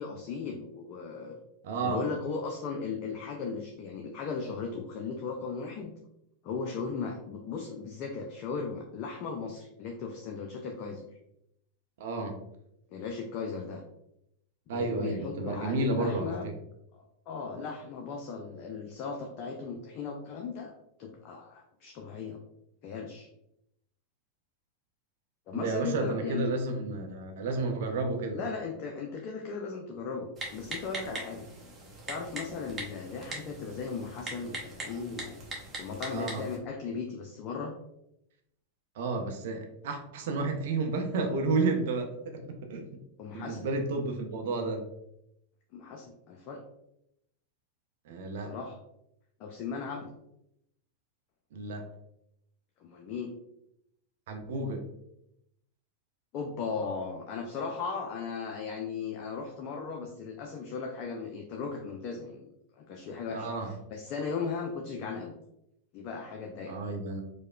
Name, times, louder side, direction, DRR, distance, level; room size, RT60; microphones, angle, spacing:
voice 1, 0.0-1.4 1.8-5.9 6.4-11.0 12.9-13.8 14.7-16.5 16.9-20.7 21.0-22.4 22.8-23.3 25.5-26.5 28.3-31.5 32.1-35.4 35.8-37.7 43.2-43.7 45.7-46.6 48.5-48.8 49.4-50.1 52.8-53.3 56.3-65.4 65.9-66.8, left 5 dB, 40° left, 2 dB, 0.4 m, -37 dB
voice 2, 1.6-2.0 12.0-12.3 14.7-16.5 25.5-28.4 36.1-36.4 39.0-43.0 43.3-44.9 48.1-48.5 51.5-51.8 54.3-54.8 63.3-63.7 66.7-67.2, right 3 dB, 55° right, 4 dB, 0.5 m, -31 dB
Typing, 30.4-36.6, right 2 dB, 20° right, 0.8 m, -41 dB
4.7 x 2.1 x 2.3 m, 0.80 s
figure-of-eight pair, 90°, 0 cm